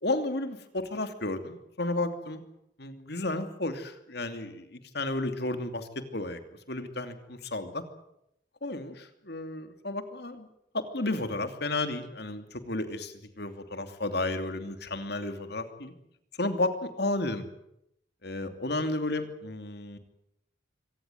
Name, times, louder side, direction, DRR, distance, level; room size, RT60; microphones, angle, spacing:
voice 1, 0.0-2.4 2.8-6.4 6.7-7.8 8.6-10.5 10.7-15.9 16.4-17.4 18.2-20.0, left 2 dB, 55° left, 8 dB, 2.8 m, -32 dB
24.5 x 18.0 x 9.5 m, 0.79 s
head